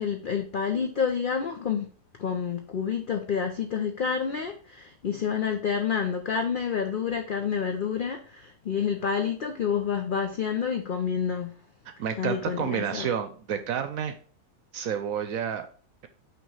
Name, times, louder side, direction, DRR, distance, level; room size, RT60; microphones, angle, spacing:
voice 1, 0.0-1.9 2.2-11.5 12.2-13.1, left 7 dB, 75° left, 5 dB, 0.4 m, -28 dB
voice 2, 12.0-14.2 14.7-15.7, right 8 dB, 70° right, 9 dB, 1.0 m, -30 dB
5.9 x 3.0 x 5.3 m, 0.41 s
omnidirectional pair, 1.6 m